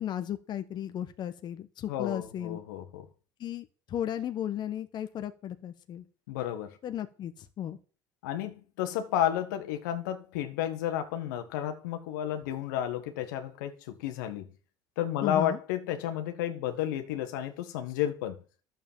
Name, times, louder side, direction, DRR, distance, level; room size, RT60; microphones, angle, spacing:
voice 1, 0.0-2.6 3.4-6.0 6.8-7.8 15.2-15.6, left 10 dB, 50° left, 1.2 m, -35 dB
voice 2, 1.9-3.0 6.3-6.8 8.2-14.4 15.0-18.4, left 11 dB, 80° left, 1.5 m, -32 dB
11.0 x 7.5 x 7.3 m
supercardioid pair, 85°, 10 cm